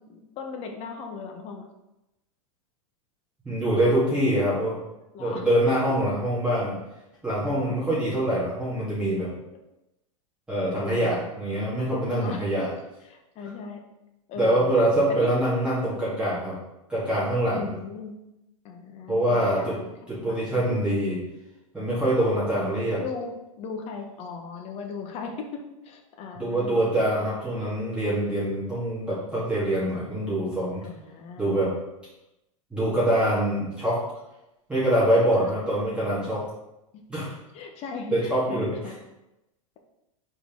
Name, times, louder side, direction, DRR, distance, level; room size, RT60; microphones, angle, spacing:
voice 1, 0.0-1.7 5.1-5.5 7.3-7.7 10.8-11.3 12.2-12.6 13.0-13.8 14.3-14.7 15.1-15.3 15.8-16.0 17.5-18.2 18.6-20.6 23.0-27.0 30.8-31.8 35.3-35.5 36.9-38.9, left 5 dB, 35° left, 3 dB, 1.1 m, -38 dB
voice 2, 3.4-4.8 5.2-6.7 7.2-9.3 10.5-12.7 14.4-16.6 16.9-17.7 19.1-19.8 20.1-21.2 21.7-23.0 26.4-30.8 31.4-31.7 32.7-34.0 34.7-36.4 37.1-37.3 38.1-38.7, right 1 dB, 5° right, -10 dB, 2.4 m, -24 dB
5.2 x 4.3 x 5.3 m, 0.93 s
hypercardioid pair, 135°, 18 cm